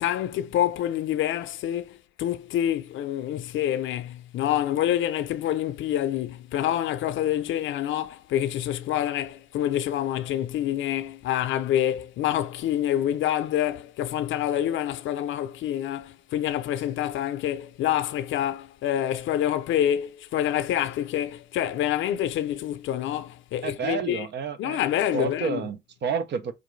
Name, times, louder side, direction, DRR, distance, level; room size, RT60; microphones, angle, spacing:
voice 1, 0.0-24.3 24.6-25.6, left 11 dB, 75° left, 0.5 m, -27 dB
voice 2, 23.6-24.8 25.1-26.5, right 6 dB, 60° right, 0.6 m, -30 dB
4.6 x 2.5 x 3.1 m
cardioid pair, 90°, 20 cm